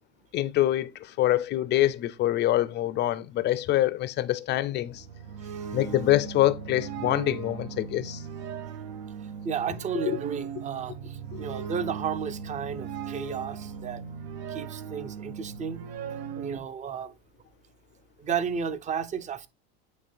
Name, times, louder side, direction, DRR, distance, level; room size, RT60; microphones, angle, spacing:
voice 1, 0.3-5.0 5.7-8.2 10.0-10.2 11.3-11.4, left 14 dB, 35° left, 0.5 m, -25 dB
sound 1, 4.8-16.6, right 7 dB, 70° right, 1.1 m, -38 dB
voice 2, 9.4-14.0 14.5-15.8 16.4-17.1 18.2-19.5, right 7 dB, 25° right, 0.7 m, -33 dB
9.0 x 3.3 x 3.4 m
hypercardioid pair, 110°, 31 cm